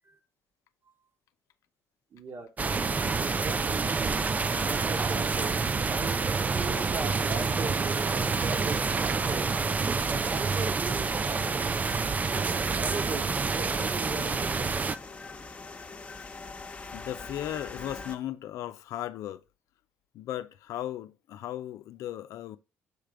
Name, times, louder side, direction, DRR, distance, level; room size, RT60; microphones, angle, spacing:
voice 1, 2.1-2.5 3.0-4.2 4.7-5.6 5.9-9.5 10.1-11.7 12.2-14.9, right 3 dB, 45° right, 1.6 m, -39 dB
sound 1, 2.6-15.0, right 4 dB, 30° right, 0.4 m, -28 dB
sound 2, 3.0-18.2, left 4 dB, 25° left, 1.0 m, -46 dB
voice 2, 16.9-19.4 20.1-22.6, left 12 dB, 70° left, 0.5 m, -36 dB
6.5 x 3.4 x 5.0 m
supercardioid pair, 75°, 6 cm